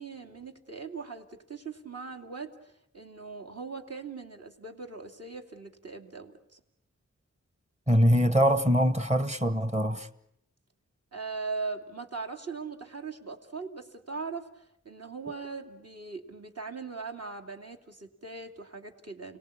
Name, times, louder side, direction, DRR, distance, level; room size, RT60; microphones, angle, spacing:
voice 1, 0.0-6.6 11.1-19.4, right 4 dB, 55° right, 2.7 m, -40 dB
voice 2, 7.9-10.1, equal, 20° right, 1.4 m, -23 dB
30.0 x 18.5 x 8.6 m
wide cardioid pair, 65°, 30 cm